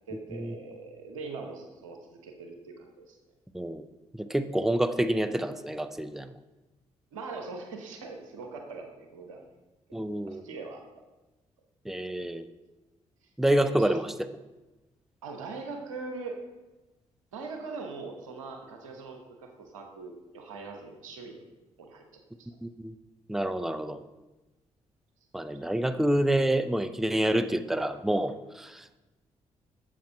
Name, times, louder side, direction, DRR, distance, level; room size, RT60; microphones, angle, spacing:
voice 1, 0.1-3.2 7.1-9.4 10.3-10.8 13.7-14.0 15.2-16.4 17.3-21.4 21.8-22.5 25.5-25.6, right 4 dB, 90° right, 3 dB, 1.0 m, -41 dB
voice 2, 4.2-6.3 9.9-10.4 11.9-12.5 13.4-14.1 22.6-22.9 23.3-24.0 25.3-29.0, right 1 dB, ahead, 10 dB, 0.6 m, -27 dB
7.6 x 7.1 x 5.5 m, 1.1 s
hypercardioid pair, 40°, 16 cm